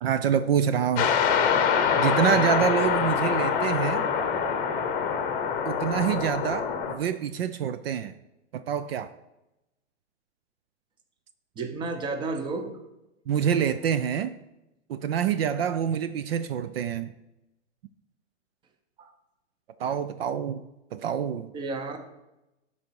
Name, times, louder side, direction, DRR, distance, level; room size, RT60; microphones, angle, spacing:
voice 1, 0.0-1.1 2.0-4.1 5.7-8.1 8.5-9.1 13.3-14.4 14.9-17.1 19.8-20.6 20.9-21.5, right 8 dB, 55° right, 0.5 m, -26 dB
sound 1, 0.9-6.9, left 7 dB, 25° left, 0.9 m, -25 dB
voice 2, 2.3-2.7 11.6-12.8 19.0-19.1 21.5-22.0, right 3 dB, 15° right, 0.7 m, -32 dB
12.0 x 4.2 x 4.6 m
hypercardioid pair, 140°, 36 cm